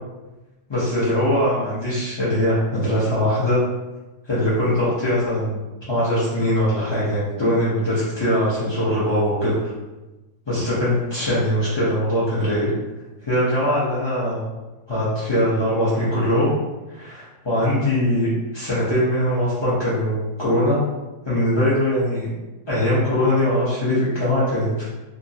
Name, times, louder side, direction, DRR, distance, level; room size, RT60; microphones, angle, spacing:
voice 1, 0.7-3.6 4.2-5.6 5.9-9.7 10.5-12.7 13.2-14.4 14.9-16.5 16.9-18.3 18.5-20.8 21.2-22.3 22.7-24.7, left 1 dB, 40° left, -11 dB, 0.4 m, -21 dB
2.8 x 2.6 x 2.6 m, 1.1 s
omnidirectional pair, 1.7 m